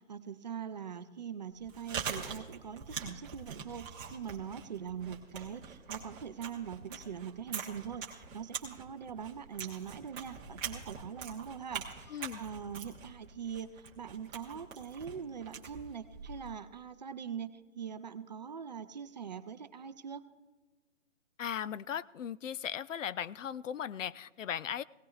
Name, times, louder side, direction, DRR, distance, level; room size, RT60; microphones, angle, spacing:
voice 1, 0.0-20.2, right 7 dB, 35° right, 11 dB, 0.5 m, -42 dB
Chewing mastication, 1.5-16.6, right 6 dB, 15° right, 1.0 m, -44 dB
voice 2, 12.1-12.4 21.4-24.8, left 9 dB, 75° left, 18 dB, 0.5 m, -37 dB
17.5 x 17.0 x 2.4 m, 1.3 s
hypercardioid pair, 150°, 38 cm